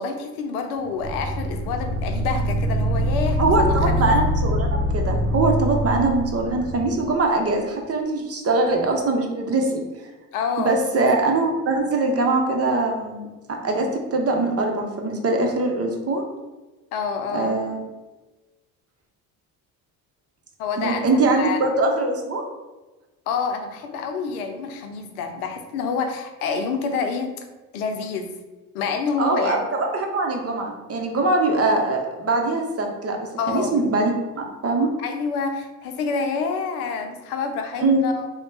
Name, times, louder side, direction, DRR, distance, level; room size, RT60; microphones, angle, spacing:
voice 1, 0.0-4.1 10.3-10.8 16.9-17.6 20.6-21.1 21.4-21.6 23.3-27.4 27.7-28.3 28.7-29.6 33.4-33.8 35.0-38.3, left 5 dB, 85° left, 5 dB, 0.6 m, -27 dB
sound 1, 1.0-7.2, equal, 50° left, 1.0 m, -24 dB
voice 2, 3.4-9.8 10.6-16.2 17.3-17.8 20.8-22.4 29.2-34.9 37.8-38.0, right 2 dB, 35° right, 2 dB, 0.8 m, -22 dB
3.3 x 2.2 x 3.9 m, 1.2 s
hypercardioid pair, 65°, 43 cm